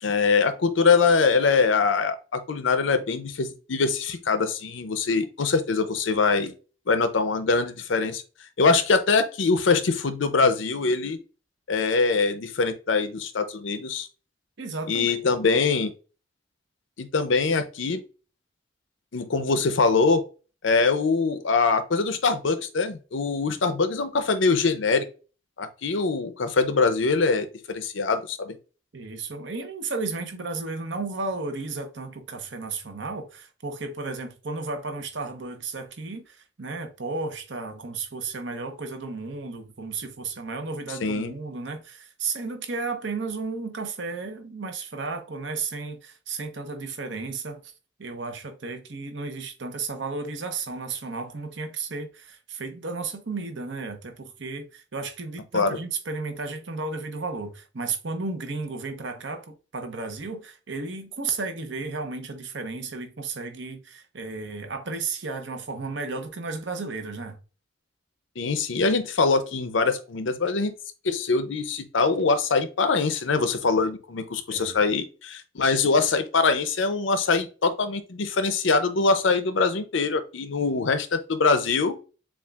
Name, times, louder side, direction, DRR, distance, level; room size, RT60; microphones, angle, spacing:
voice 1, 0.0-6.5 6.9-8.2 8.6-11.2 11.7-14.1 14.9-15.9 17.0-18.0 19.1-20.2 20.6-25.1 25.6-28.6 41.0-41.3 55.5-55.7 68.4-70.7 71.0-82.0, left 4 dB, 85° left, 0.6 m, -23 dB
voice 2, 14.6-15.3 28.9-47.7 48.0-67.4 74.5-74.8, right 3 dB, 75° right, 0.9 m, -33 dB
7.0 x 2.4 x 2.4 m
head